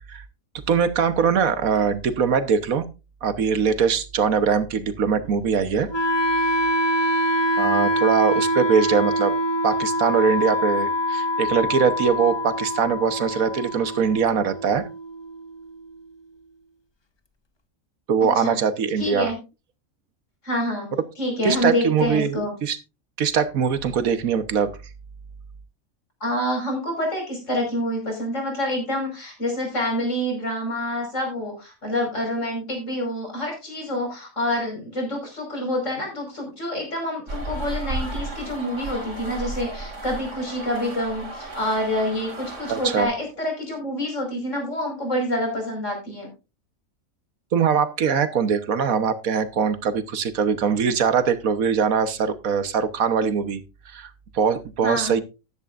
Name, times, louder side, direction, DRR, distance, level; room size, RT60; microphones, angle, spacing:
voice 1, 0.7-2.9 3.2-5.9 7.6-9.4 9.6-14.9 18.1-19.3 21.4-22.8 23.2-24.7 42.7-43.1 47.5-53.6 53.9-55.2, right 6 dB, 85° right, 11 dB, 1.6 m, -22 dB
Wind instrument woodwind instrument, 5.9-15.9, equal, 30° left, 0.5 m, -24 dB
voice 2, 18.2-18.6 19.0-19.4 20.4-20.9 21.2-22.5 26.2-46.3 54.8-55.2, left 1 dB, 60° left, 2 dB, 5.5 m, -27 dB
sound 1, 37.3-43.0, right 2 dB, 60° right, 3.0 m, -34 dB
13.5 x 11.5 x 2.5 m, 0.28 s
omnidirectional pair, 1.4 m